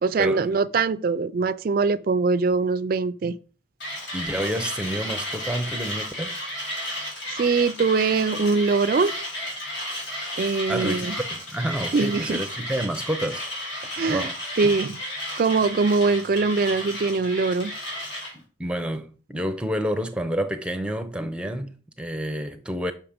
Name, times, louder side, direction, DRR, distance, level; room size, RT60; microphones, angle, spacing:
voice 1, 0.0-3.4 7.3-9.2 10.4-11.2 11.9-12.5 14.0-14.3 14.6-15.0 15.4-17.7, right 4 dB, 45° right, 0.3 m, -22 dB
Mechanisms, 3.8-18.3, left 1 dB, 65° left, 3.2 m, -33 dB
voice 2, 4.1-6.4 10.7-13.4 14.1-14.3 18.3-22.9, equal, 5° right, 0.6 m, -29 dB
5.9 x 5.7 x 5.0 m
head